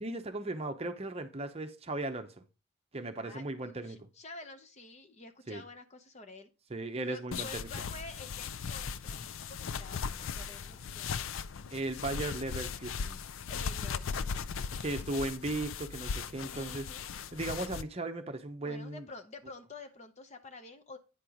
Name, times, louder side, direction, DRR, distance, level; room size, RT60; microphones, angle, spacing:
voice 1, 0.0-2.4 2.9-4.0 5.5-5.6 6.7-7.7 11.7-13.2 14.8-16.9 17.3-19.1, right 2 dB, 30° right, 0.8 m, -37 dB
voice 2, 3.2-6.5 7.1-11.3 13.5-15.0 16.5-17.1 18.6-21.0, left 3 dB, 30° left, 0.8 m, -49 dB
sound 1, 7.3-17.8, left 6 dB, 65° left, 0.4 m, -38 dB
sound 2, 10.3-13.3, equal, 5° left, 2.5 m, -54 dB
9.3 x 4.4 x 5.0 m
head